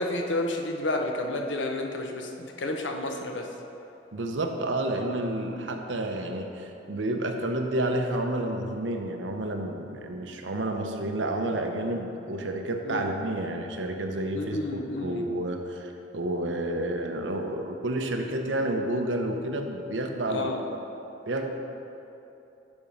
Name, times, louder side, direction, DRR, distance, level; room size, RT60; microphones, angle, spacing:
voice 1, 0.0-3.5 10.2-10.3 12.8-13.1 14.3-15.3 20.3-20.6, left 2 dB, 80° left, 3 dB, 0.8 m, -31 dB
voice 2, 4.1-20.6 21.3-21.5, right 1 dB, 85° right, 4 dB, 0.8 m, -30 dB
11.0 x 4.5 x 5.2 m, 2.9 s
head